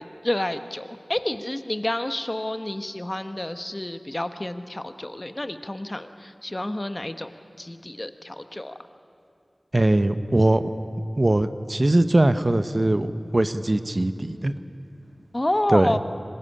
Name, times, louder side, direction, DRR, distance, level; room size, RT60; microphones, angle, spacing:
voice 1, 0.0-7.3 7.6-8.8 15.3-16.0, left 1 dB, 30° left, 9 dB, 1.1 m, -29 dB
voice 2, 9.7-10.7 11.2-14.5 15.7-15.9, right 1 dB, 45° right, 11 dB, 0.9 m, -21 dB
25.5 x 15.5 x 9.8 m, 2.6 s
wide cardioid pair, 45°, 0 cm